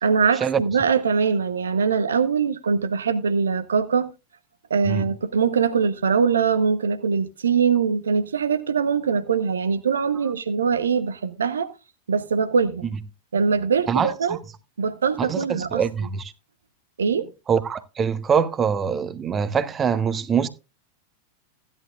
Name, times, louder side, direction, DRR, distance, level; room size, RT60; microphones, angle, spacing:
voice 1, 0.0-4.1 4.7-11.7 12.1-12.9 13.3-14.4 14.8-15.8 17.0-17.3, right 6 dB, 70° right, 1.0 m, -22 dB
voice 2, 13.9-14.4 15.2-16.3 17.5-20.5, right 7 dB, 20° right, 1.0 m, -24 dB
15.5 x 11.0 x 2.4 m
figure-of-eight pair, 90°, 0 cm